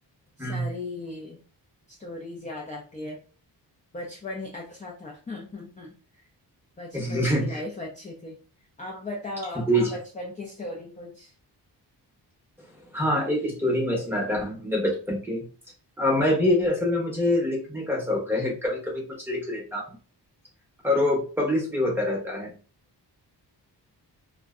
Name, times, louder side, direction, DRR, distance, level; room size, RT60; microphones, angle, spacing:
voice 1, 0.4-1.4 1.9-3.2 3.9-6.2 6.8-8.4 8.8-11.3 16.2-16.4, left 2 dB, 20° left, -1 dB, 0.4 m, -37 dB
voice 2, 6.9-7.6 9.7-10.0 12.9-15.4 16.0-19.9 20.8-22.5, left 1 dB, 5° right, -2 dB, 0.7 m, -25 dB
2.5 x 2.1 x 2.3 m, 0.37 s
wide cardioid pair, 110°, 42 cm